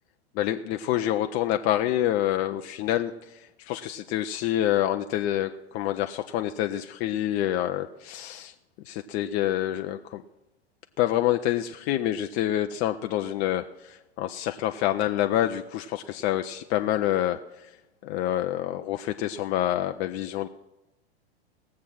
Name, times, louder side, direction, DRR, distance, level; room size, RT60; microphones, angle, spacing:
voice 1, 0.4-8.5 8.9-10.2 11.0-17.7 18.0-20.5, left 12 dB, 25° left, 7 dB, 0.4 m, -27 dB
18.5 x 7.4 x 6.1 m, 0.99 s
figure-of-eight pair, 95°, 32 cm